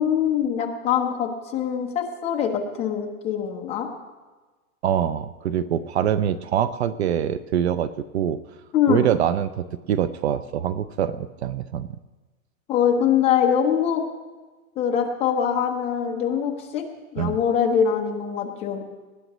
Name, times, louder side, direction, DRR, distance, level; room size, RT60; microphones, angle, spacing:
voice 1, 0.0-3.9 8.7-9.0 12.7-14.0 14.8-18.8, left 8 dB, 15° left, 1 dB, 0.9 m, -23 dB
voice 2, 4.8-8.4 8.9-11.9 17.2-17.4, right 9 dB, 50° right, 15 dB, 0.5 m, -24 dB
20.0 x 14.5 x 3.1 m, 1.3 s
supercardioid pair, 165°, 43 cm